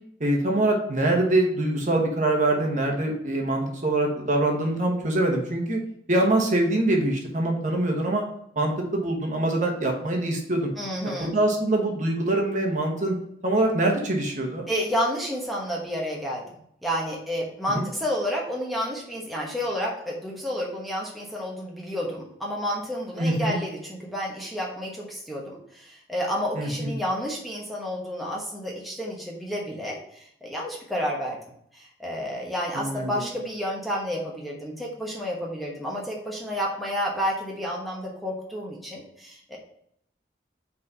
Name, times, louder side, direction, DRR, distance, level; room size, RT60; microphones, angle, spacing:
voice 1, 0.2-5.8 6.1-8.2 8.5-10.7 11.0-13.1 13.4-14.7 17.7-17.8 23.2-23.6 26.5-26.9 32.7-33.3, right 1 dB, 40° right, 1 dB, 1.2 m, -24 dB
voice 2, 10.8-11.3 14.7-31.4 31.7-39.6, equal, ahead, -3 dB, 1.0 m, -30 dB
4.7 x 4.2 x 5.4 m, 0.70 s
head